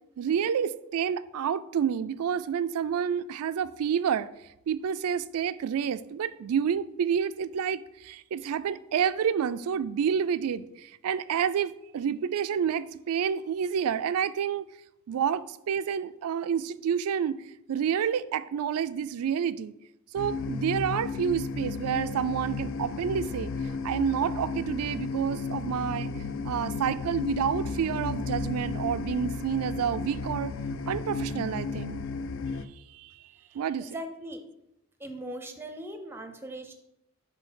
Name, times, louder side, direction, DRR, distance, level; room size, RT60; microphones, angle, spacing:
voice 1, 0.2-4.3 4.7-14.7 15.1-17.4 17.7-19.7 20.1-23.5 23.8-26.1 26.4-30.5 30.9-32.1 32.9-33.2 33.5-34.0, right 8 dB, 80° right, 0.3 m, -29 dB
sound 1, 20.2-32.7, left 4 dB, 60° left, 0.4 m, -33 dB
voice 2, 33.8-34.4 35.0-36.7, right 1 dB, 10° right, 0.5 m, -39 dB
7.5 x 2.7 x 5.6 m
head